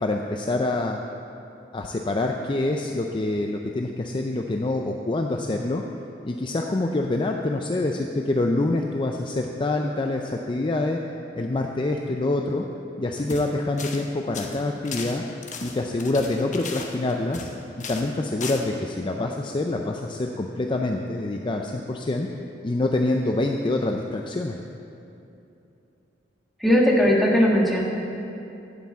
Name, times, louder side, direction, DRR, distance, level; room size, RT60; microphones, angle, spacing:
voice 1, 0.0-1.0 1.7-5.8 6.2-11.0 11.3-12.7 13.0-15.2 15.6-17.5 17.9-22.3 22.6-24.6, left 2 dB, 25° left, 2 dB, 0.4 m, -26 dB
sound 1, 13.2-13.5 13.8-14.1 14.3-17.5 17.8-18.1 18.4-18.6, left 4 dB, 45° left, 1.0 m, -36 dB
voice 2, 26.6-27.8, equal, ahead, -3 dB, 1.5 m, -18 dB
11.5 x 5.9 x 8.1 m, 2.8 s
head